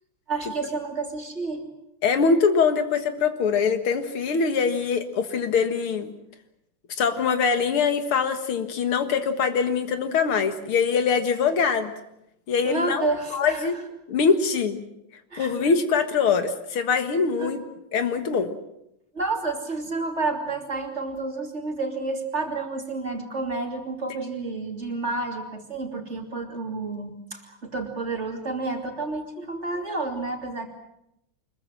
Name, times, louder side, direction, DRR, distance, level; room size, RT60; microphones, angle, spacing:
voice 1, 0.3-1.6 12.6-13.7 15.3-15.5 17.4-17.6 19.1-30.7, right 3 dB, 30° right, 3 dB, 3.1 m, -30 dB
voice 2, 2.0-6.1 7.0-11.9 12.5-13.1 13.3-13.8 14.1-14.8 15.4-17.6 17.9-18.5, left 5 dB, 80° left, 8 dB, 2.5 m, -23 dB
25.0 x 21.5 x 7.6 m, 0.81 s
omnidirectional pair, 2.4 m